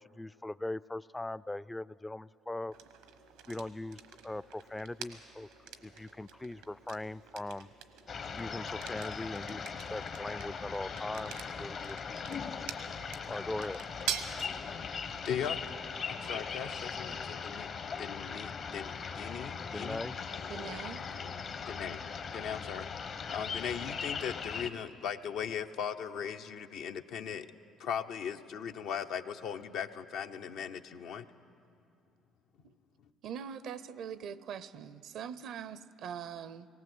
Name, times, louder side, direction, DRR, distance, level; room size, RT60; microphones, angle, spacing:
voice 1, 0.0-2.7 3.5-5.5 5.8-7.7 8.4-11.3 11.6-12.2 12.5-12.6 13.3-13.8 19.6-20.2, left 2 dB, 15° left, 19 dB, 0.4 m, -40 dB
sound 1, 2.7-20.5, right 8 dB, 90° right, 1.1 m, -47 dB
sound 2, 8.1-24.7, left 6 dB, 55° left, 1.1 m, -39 dB
voice 2, 14.6-15.6 16.0-17.7 18.0-20.1 21.6-22.0 22.3-22.9 23.3-27.5 27.8-31.3, left 8 dB, 70° left, 6 dB, 0.7 m, -38 dB
voice 3, 20.5-21.0 32.6-32.7 33.2-36.7, right 8 dB, 70° right, 17 dB, 0.6 m, -42 dB
19.0 x 18.0 x 7.9 m, 2.6 s
supercardioid pair, 65°, 0 cm